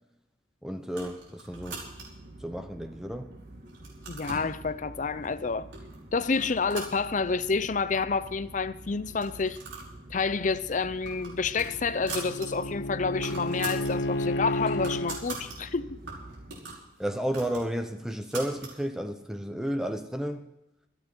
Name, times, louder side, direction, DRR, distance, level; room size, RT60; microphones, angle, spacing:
voice 1, 0.6-1.8 2.4-3.3 17.0-20.5, equal, 5° right, 0.7 m, -32 dB
sound 1, 0.9-2.3 2.9-3.4 3.7-4.5 5.2-5.3 5.7-6.0 6.3-7.6 7.9-8.0 8.2-8.3 9.1-9.9 10.3-10.4 10.8-12.5 12.8-12.9 13.1-13.9 14.3-15.6 16.1-18.8, right 4 dB, 85° right, 5.7 m, -42 dB
sound 2, 1.5-16.6, right 1 dB, 50° right, 1.8 m, -47 dB
voice 2, 4.1-5.7 6.1-9.6 10.1-16.0, left 4 dB, 40° left, 0.6 m, -29 dB
Bowed string instrument, 11.1-15.2, left 1 dB, 65° left, 1.0 m, -32 dB
25.5 x 9.1 x 4.6 m
head